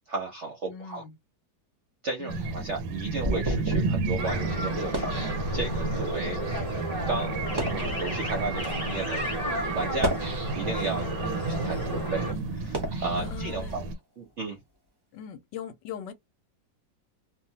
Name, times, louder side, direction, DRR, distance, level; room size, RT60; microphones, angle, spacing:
voice 1, 0.1-1.0 2.0-5.1 5.5-6.4 7.1-9.3 9.7-10.1 10.5-13.9 14.2-14.6, right 3 dB, 55° right, 0.8 m, -34 dB
voice 2, 0.7-1.1 2.2-2.6 11.2-11.7 12.7-12.9 13.2-13.8 15.1-16.1, left 8 dB, 75° left, 1.2 m, -41 dB
sound 1, 2.3-6.1 6.7-6.9 7.4-7.9 8.7-8.9 9.8-10.9 11.4-13.9, equal, 40° right, 0.3 m, -34 dB
sound 2, 2.3-14.0, right 3 dB, 90° right, 1.3 m, -32 dB
sound 3, 4.2-12.3, right 1 dB, 25° left, 1.0 m, -33 dB
2.9 x 2.2 x 2.8 m
omnidirectional pair, 2.0 m